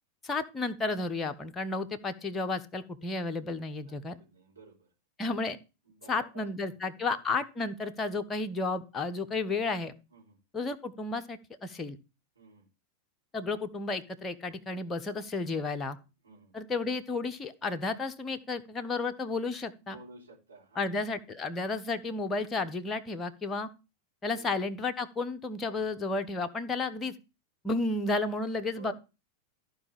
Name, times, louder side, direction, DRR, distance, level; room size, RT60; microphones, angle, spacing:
voice 1, 0.2-4.2 5.2-5.6 6.1-9.9 10.5-12.0 13.3-16.0 16.5-20.0 20.8-23.7 24.2-27.1 27.6-28.9, left 3 dB, 20° left, 7 dB, 1.0 m, -32 dB
voice 2, 3.8-4.9 5.8-6.7 7.1-7.2 10.1-10.4 12.3-12.7 15.3-15.6 16.2-16.5 19.8-21.0 24.3-24.6 28.4-28.9, right 3 dB, 75° right, -4 dB, 3.4 m, -54 dB
14.5 x 4.9 x 3.5 m, 0.29 s
figure-of-eight pair, 90°, 0 cm